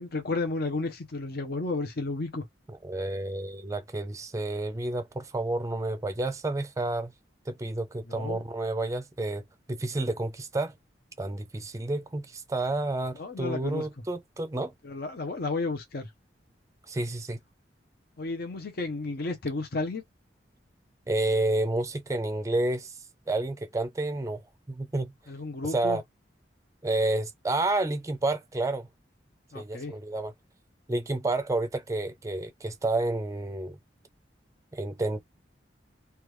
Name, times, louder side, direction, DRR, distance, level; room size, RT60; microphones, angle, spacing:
voice 1, 0.0-2.4 8.0-8.4 13.1-13.9 14.8-16.1 18.2-20.0 25.3-26.0 29.5-29.9, left 3 dB, 60° left, 0.7 m, -32 dB
voice 2, 2.8-7.1 7.5-9.4 9.7-10.7 11.2-14.7 16.9-17.4 21.1-22.9 23.3-24.4 24.7-25.1 25.6-26.0 26.8-28.9 29.5-30.3 30.9-33.8 34.7-35.2, right 2 dB, 20° right, 0.4 m, -30 dB
3.3 x 2.3 x 3.0 m
head